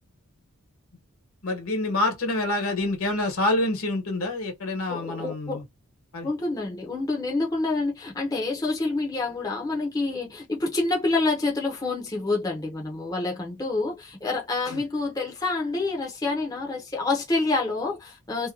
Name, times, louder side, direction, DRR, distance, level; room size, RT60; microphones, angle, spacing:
voice 1, 1.4-5.6 6.1-6.3 14.7-14.8, left 2 dB, 70° left, 1.1 m, -27 dB
voice 2, 4.9-5.6 6.2-18.5, left 3 dB, 15° left, 0.5 m, -27 dB
2.7 x 2.2 x 2.4 m
head